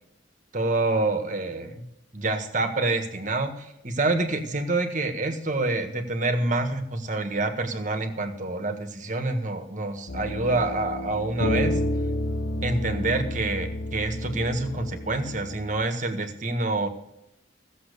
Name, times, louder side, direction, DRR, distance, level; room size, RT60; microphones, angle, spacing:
voice 1, 0.5-1.8 2.1-11.8 12.6-16.9, right 2 dB, 40° right, 6 dB, 1.6 m, -27 dB
sound 1, 10.1-15.8, left 1 dB, 80° left, 1.0 m, -30 dB
16.0 x 7.5 x 6.8 m, 0.86 s
head